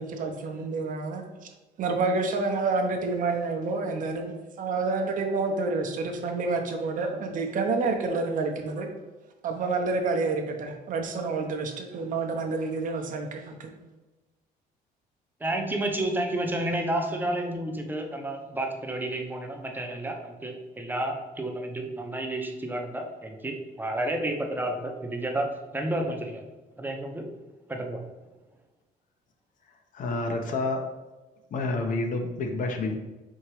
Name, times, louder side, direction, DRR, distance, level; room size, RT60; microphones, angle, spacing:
voice 1, 0.0-1.5 1.8-4.3 4.6-8.9 9.4-13.7, right 3 dB, 50° right, 4 dB, 0.6 m, -28 dB
voice 2, 15.4-26.4 26.8-27.2 27.7-28.1, right 1 dB, 10° right, 2 dB, 0.6 m, -31 dB
voice 3, 29.9-31.0 31.5-32.9, left 2 dB, 50° left, 4 dB, 0.6 m, -29 dB
4.5 x 2.8 x 3.0 m, 1.1 s
cardioid pair, 110°, 17 cm